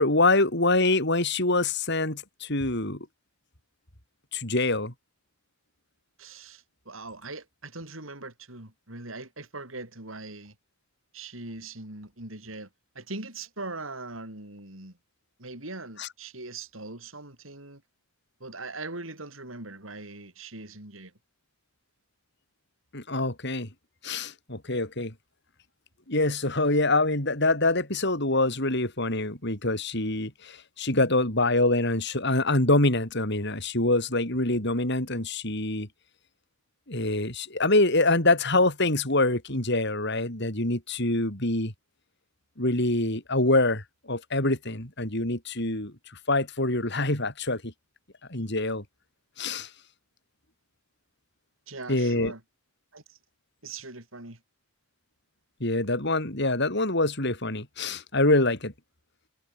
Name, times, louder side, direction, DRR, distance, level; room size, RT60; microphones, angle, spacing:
voice 1, 0.0-3.1 4.3-4.9 16.0-16.1 22.9-23.7 24.0-25.1 26.1-35.9 36.9-41.7 42.6-45.9 46.3-47.7 48.3-48.8 49.4-49.7 51.9-52.3 55.6-58.7, left 2 dB, 60° left, 7.3 m, -25 dB
voice 2, 6.2-10.5 11.1-12.7 12.9-14.9 15.4-17.8 18.4-21.1 51.7-52.4 52.9-53.2 53.6-54.4, right 3 dB, 90° right, 7.8 m, -41 dB
head